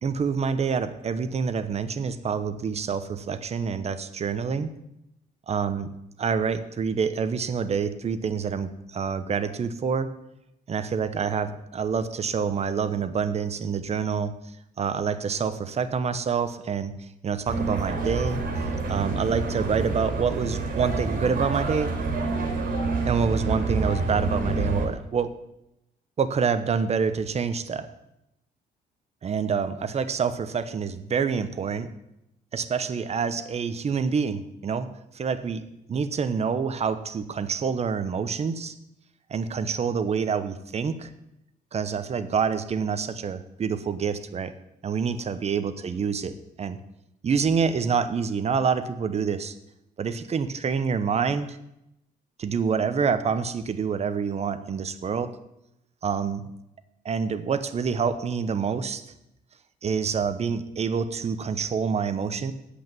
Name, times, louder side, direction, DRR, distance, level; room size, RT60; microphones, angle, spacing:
voice 1, 0.0-4.7 5.5-5.9 6.2-10.1 10.7-14.3 14.8-16.9 17.2-18.4 18.9-21.9 23.0-25.3 26.2-27.9 29.2-31.9 32.5-34.9 35.1-38.7 39.3-41.1 41.7-44.5 44.8-46.8 47.2-49.5 50.0-51.6 52.4-55.3 56.0-56.4 57.0-59.0 59.8-62.5, right 6 dB, 40° right, 11 dB, 0.9 m, -27 dB
sound 1, 17.5-24.9, right 3 dB, 60° right, 3.9 m, -28 dB
8.4 x 8.2 x 9.1 m, 0.85 s
cardioid pair, 125°, 17 cm